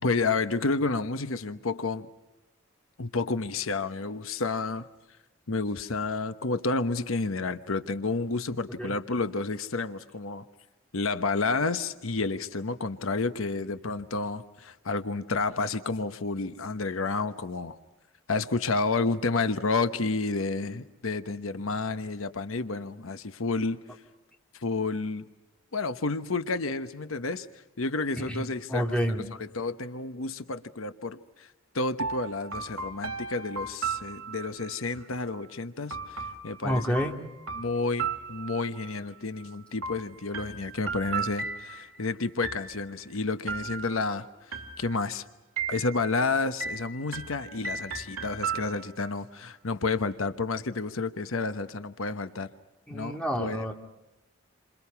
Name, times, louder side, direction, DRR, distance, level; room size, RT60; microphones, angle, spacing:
voice 1, 0.0-2.1 3.0-4.9 5.5-10.4 10.9-17.8 18.3-24.0 24.5-25.2 25.7-27.5 27.8-29.0 29.4-37.0 37.5-45.2 45.7-52.5 52.9-53.7, left 3 dB, 75° left, 10 dB, 1.1 m, -30 dB
voice 2, 28.2-29.3 36.6-37.2 52.9-53.7, equal, 5° left, 1 dB, 2.3 m, -29 dB
Delay Soft Piano, 32.0-34.7 35.9-38.9 39.8-42.0 42.4-43.0 43.5-44.1 44.5-45.1 45.6-46.2 46.6-49.1, right 5 dB, 90° right, 2.3 m, -36 dB
28.5 x 27.0 x 5.8 m, 1.0 s
head